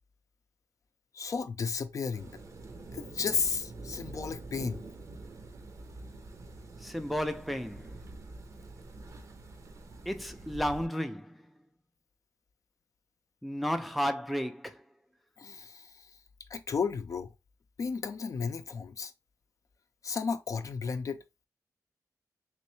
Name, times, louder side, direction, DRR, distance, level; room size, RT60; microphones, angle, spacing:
voice 1, 1.1-2.3 2.9-4.8 15.4-15.9 16.5-17.3 17.8-19.1 20.0-21.2, left 5 dB, 60° left, 0.4 m, -33 dB
sound 1, 2.1-10.9, right 2 dB, 55° right, 0.6 m, -46 dB
voice 2, 6.8-7.9 10.1-11.4 13.4-14.8, equal, ahead, 0.4 m, -33 dB
3.1 x 3.1 x 3.1 m
wide cardioid pair, 125°, 6 cm